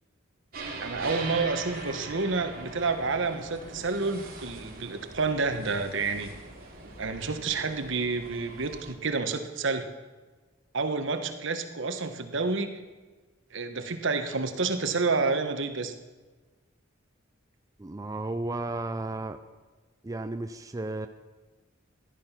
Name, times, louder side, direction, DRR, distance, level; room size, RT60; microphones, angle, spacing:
sound 1, 0.5-8.9, right 3 dB, 50° right, 3.0 m, -41 dB
voice 1, 0.8-6.3 7.0-9.9 10.7-12.7 13.5-15.9, right 4 dB, 65° right, 8 dB, 1.2 m, -29 dB
voice 2, 17.8-19.4 20.0-21.1, right 2 dB, 15° right, 7 dB, 0.4 m, -33 dB
15.0 x 11.0 x 5.8 m, 1.3 s
head